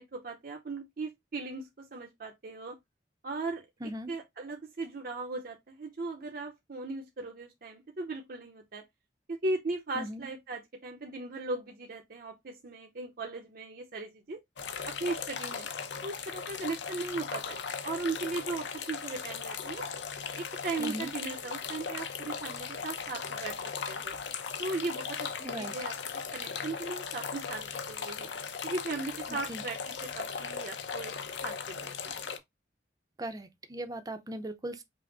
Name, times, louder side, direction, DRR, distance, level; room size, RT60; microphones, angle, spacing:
voice 1, 0.0-2.8 3.2-3.7 4.1-8.8 9.3-14.4 14.9-15.7 16.0-17.6 17.8-19.8 20.3-23.6 23.9-24.2 24.6-25.3 25.5-28.3 28.6-31.1 31.4-32.3, right 3 dB, 55° right, 0.7 m, -38 dB
voice 2, 3.8-4.1 10.0-10.3 20.8-21.1 25.4-25.7 29.3-29.6 33.2-34.8, right 1 dB, 20° right, 0.6 m, -39 dB
sound 1, 14.6-32.4, left 6 dB, 90° left, 0.6 m, -38 dB
5.6 x 2.1 x 3.9 m
head